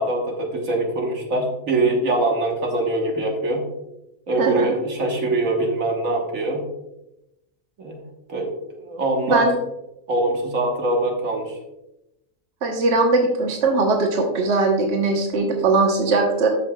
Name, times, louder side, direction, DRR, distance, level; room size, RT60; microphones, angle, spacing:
voice 1, 0.0-3.6 4.3-6.6 7.8-8.0 8.3-9.5 10.1-11.5, right 2 dB, 75° right, 1 dB, 1.7 m, -23 dB
voice 2, 4.4-4.7 9.3-9.6 12.6-16.5, right 3 dB, 55° right, 1 dB, 1.3 m, -20 dB
13.0 x 5.7 x 2.3 m, 0.91 s
omnidirectional pair, 1.4 m